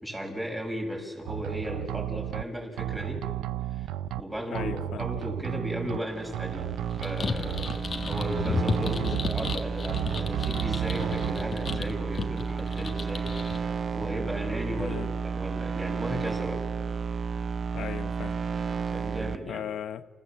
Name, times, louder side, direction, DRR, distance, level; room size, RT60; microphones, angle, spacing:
voice 1, 0.0-3.2 3.7-3.9 4.2-6.7 7.0-7.8 8.1-16.6 18.9-19.6, equal, 10° right, 1 dB, 6.8 m, -36 dB
sound 1, 1.3-2.4 2.8-4.2 4.5-6.0 6.3-7.8 8.1-9.5 9.9-11.3 11.7-11.8, right 12 dB, 90° right, 0.6 m, -33 dB
voice 2, 4.5-5.0 9.0-9.2 14.8-15.1 17.7-18.4 19.5-20.1, left 9 dB, 70° left, 12 dB, 0.9 m, -37 dB
sound 2, 5.9-19.4, right 6 dB, 50° right, 0.9 m, -32 dB
sound 3, 6.9-13.6, left 5 dB, 40° left, 1.7 m, -34 dB
28.5 x 15.5 x 7.5 m, 1.5 s
cardioid pair, 90°, 0 cm